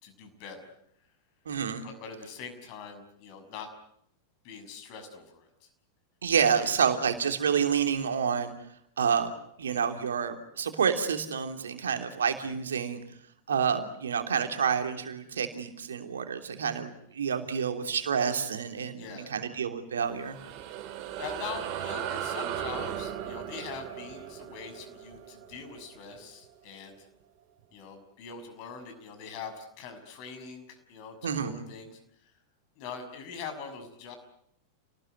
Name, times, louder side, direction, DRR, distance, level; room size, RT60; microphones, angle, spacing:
voice 1, 0.0-0.7 1.8-3.7 4.4-5.5 6.5-6.6 11.8-12.1 18.9-19.3 21.2-26.9 27.7-32.0 32.8-34.2, left 6 dB, 45° left, 6 dB, 6.4 m, -43 dB
voice 2, 1.4-1.9 6.2-8.5 9.0-13.0 13.5-20.4 31.2-31.5, right 7 dB, 65° right, 6 dB, 3.1 m, -28 dB
sound 1, 20.0-26.8, right 10 dB, 40° right, 4.0 m, -37 dB
29.0 x 19.5 x 9.5 m, 0.74 s
figure-of-eight pair, 90°, 0 cm